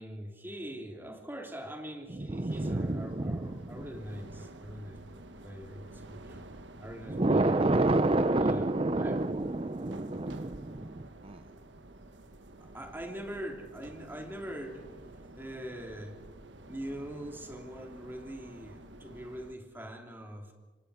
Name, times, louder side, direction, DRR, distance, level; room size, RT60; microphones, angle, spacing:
voice 1, 0.0-6.5 6.8-7.6 8.3-8.7 9.0-9.2 12.6-16.2 16.7-20.5, equal, 10° right, 2 dB, 3.2 m, -43 dB
voice 2, 2.1-3.9 4.6-5.0 7.1-11.5, right 2 dB, 30° right, 12 dB, 0.6 m, -29 dB
sound 1, 2.5-19.5, right 2 dB, 85° right, 1.5 m, -50 dB
27.0 x 24.5 x 5.0 m, 1.3 s
head